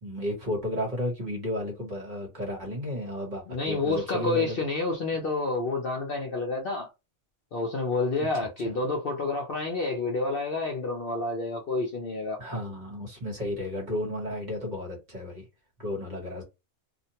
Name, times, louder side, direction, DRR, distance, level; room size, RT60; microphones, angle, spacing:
voice 1, 0.0-4.6 8.2-8.8 12.4-15.4 15.8-16.4, left 1 dB, 40° right, 1.0 m, -33 dB
voice 2, 3.5-6.9 7.5-12.6, left 3 dB, 55° left, 0.7 m, -29 dB
2.5 x 2.1 x 2.8 m
omnidirectional pair, 1.4 m